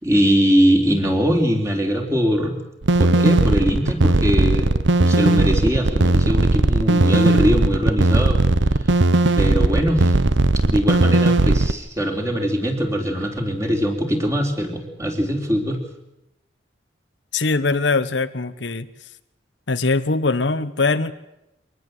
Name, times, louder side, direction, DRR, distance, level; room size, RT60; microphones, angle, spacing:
voice 1, 0.0-2.6 3.0-4.7 5.0-8.4 9.3-10.2 10.6-15.8, equal, 15° right, 3 dB, 3.7 m, -21 dB
sound 1, 2.8-11.7, right 2 dB, 80° right, 1.0 m, -17 dB
voice 2, 17.3-18.9 19.7-21.1, left 3 dB, 75° left, 12 dB, 1.1 m, -21 dB
24.5 x 19.5 x 7.9 m, 0.87 s
head